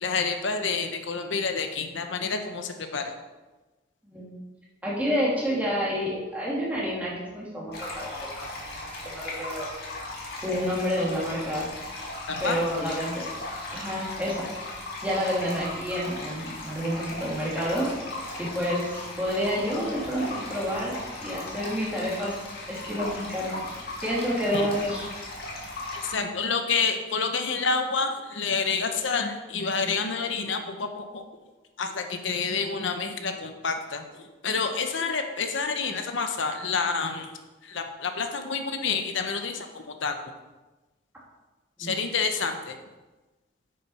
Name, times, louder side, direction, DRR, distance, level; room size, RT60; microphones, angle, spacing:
voice 1, 0.0-3.0 12.3-12.6 24.5-24.6 26.0-31.2 31.8-34.0 34.4-37.3 37.6-40.2 41.8-42.8, left 5 dB, 80° left, 6 dB, 0.9 m, -28 dB
voice 2, 4.8-8.2 8.7-9.7 10.4-11.7 12.4-13.3 13.7-14.5 15.0-17.9 18.4-22.3 22.7-23.6 24.0-25.1 41.8-41.9, equal, 10° right, -6 dB, 2.6 m, -29 dB
sound 1, 7.7-26.1, left 2 dB, 55° left, 2.2 m, -37 dB
8.8 x 6.4 x 5.6 m, 1.2 s
head